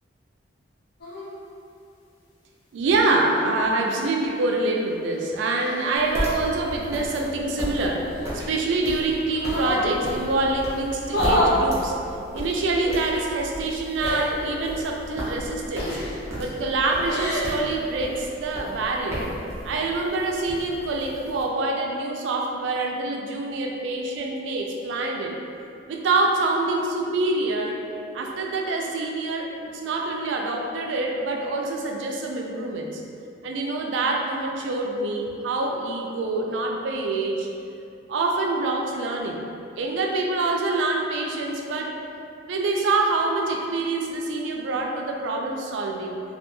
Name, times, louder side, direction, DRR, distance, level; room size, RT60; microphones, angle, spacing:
sound 1, 1.0-1.3 2.9-3.5 4.8-6.0 8.0-8.8 9.3-9.9 11.0-11.6 12.8-13.0 14.0-14.3 15.8-16.2 16.9-17.5, left 1 dB, 55° left, 0.5 m, -28 dB
voice 1, 2.7-8.1 8.3-12.0 12.3-16.0 16.4-19.2 19.6-25.4 25.9-27.8 28.1-33.0 33.4-37.5 38.1-39.4 39.8-42.0 42.5-46.2, right 2 dB, 80° right, 1 dB, 0.3 m, -26 dB
sound 2, 6.0-21.4, equal, 15° right, 0.5 m, -35 dB
2.3 x 2.2 x 2.9 m, 2.5 s
head